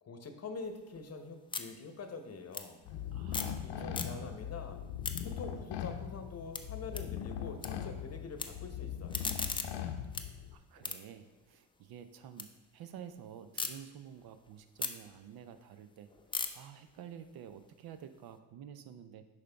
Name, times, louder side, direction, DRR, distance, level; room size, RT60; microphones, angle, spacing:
voice 1, 0.0-2.8 3.6-4.8 5.2-9.2, left 4 dB, 35° left, 7 dB, 1.0 m, -45 dB
sound 1, 0.6-3.6 3.9-4.5 4.8-7.7 8.0-8.5 8.9-12.5 12.9-13.7 14.2-18.3, left 4 dB, 10° left, 0.5 m, -42 dB
sound 2, 2.8-10.5, left 9 dB, 65° left, 0.7 m, -40 dB
voice 2, 3.1-4.4 10.2-16.1 16.5-19.2, right 9 dB, 55° right, 10 dB, 0.7 m, -50 dB
6.6 x 5.2 x 3.4 m, 1.3 s
supercardioid pair, 70°, 44 cm